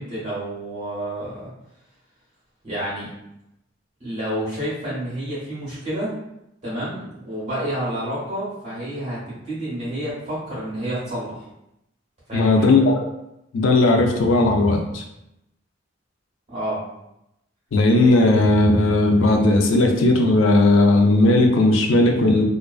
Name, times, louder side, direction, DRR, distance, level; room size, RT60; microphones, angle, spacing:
voice 1, 0.0-1.5 2.6-3.1 4.0-6.1 6.6-11.4 12.3-12.5 16.5-16.8, right 1 dB, 35° right, -10 dB, 1.0 m, -29 dB
voice 2, 12.3-13.0 13.5-15.0 17.7-22.4, left 2 dB, 80° left, 2 dB, 0.4 m, -16 dB
2.3 x 2.2 x 2.3 m, 0.86 s
head